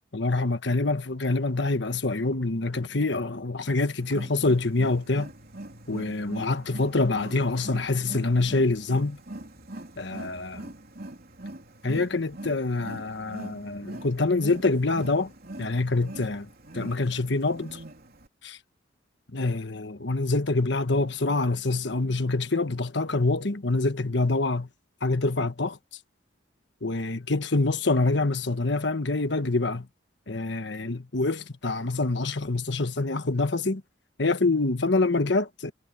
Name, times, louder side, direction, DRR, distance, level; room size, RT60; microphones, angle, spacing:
voice 1, 0.1-5.3 5.9-9.2 10.0-10.7 11.8-15.3 15.6-16.5 16.7-17.8 18.4-18.6 19.3-24.7 25.0-25.7 26.8-29.9 30.3-33.8 34.2-35.7, left 3 dB, 65° left, 1.3 m, -26 dB
Wild animals, 4.0-18.3, right 1 dB, 55° right, 3.4 m, -42 dB
head